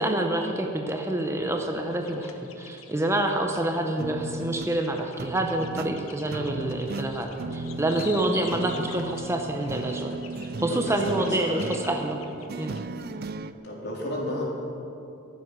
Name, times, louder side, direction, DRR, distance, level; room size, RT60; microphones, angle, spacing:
voice 1, 0.0-10.2 10.6-12.2 12.5-12.7, right 1 dB, 15° right, 3 dB, 0.8 m, -27 dB
sound 1, 1.9-3.8 4.4-12.8, left 6 dB, 85° left, 1.1 m, -46 dB
sound 2, 4.0-13.5, right 3 dB, 50° right, 0.5 m, -36 dB
voice 2, 10.7-11.6 13.2-13.3 13.6-14.4, left 1 dB, 55° left, -3 dB, 3.9 m, -33 dB
23.0 x 7.7 x 6.2 m, 2.7 s
head